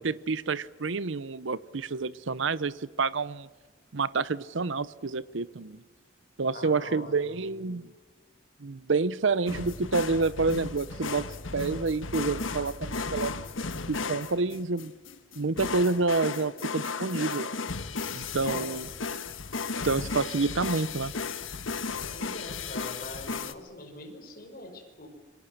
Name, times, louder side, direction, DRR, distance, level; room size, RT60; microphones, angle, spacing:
voice 1, 0.0-3.5 3.9-5.8 6.4-7.9 8.6-11.3 11.5-13.4 13.9-14.9 15.4-17.5 18.1-18.9 19.8-21.1, right 4 dB, 75° right, 17 dB, 0.7 m, -28 dB
voice 2, 6.5-7.6 18.4-18.7 22.1-25.1, left 2 dB, 45° left, 3 dB, 5.8 m, -42 dB
sound 1, 9.5-23.5, left 4 dB, 90° left, 1.5 m, -35 dB
28.0 x 24.0 x 6.7 m, 1.3 s
head